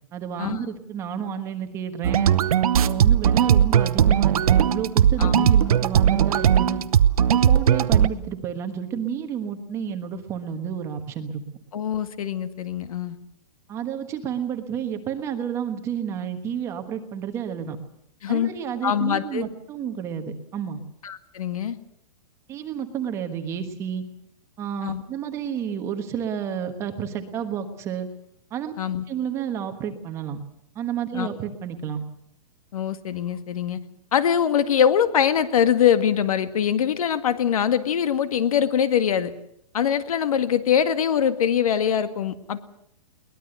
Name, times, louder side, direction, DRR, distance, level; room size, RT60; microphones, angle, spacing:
voice 1, 0.1-2.4 2.8-6.9 7.3-11.4 13.7-17.8 18.3-20.8 22.5-24.1 24.6-28.1 28.5-28.7 29.1-30.4 30.7-32.0, right 8 dB, 15° right, 7 dB, 1.3 m, -30 dB
sound 1, 2.0-8.1, right 9 dB, 70° right, 1.0 m, -18 dB
voice 2, 5.2-5.5 11.7-13.2 18.2-18.5 18.8-19.4 21.0-21.8 24.8-25.0 28.8-29.0 31.1-31.3 32.7-33.8 34.1-39.3 39.7-42.6, left 8 dB, 65° left, 11 dB, 2.0 m, -23 dB
22.5 x 19.5 x 7.9 m, 0.73 s
hypercardioid pair, 175°, 20 cm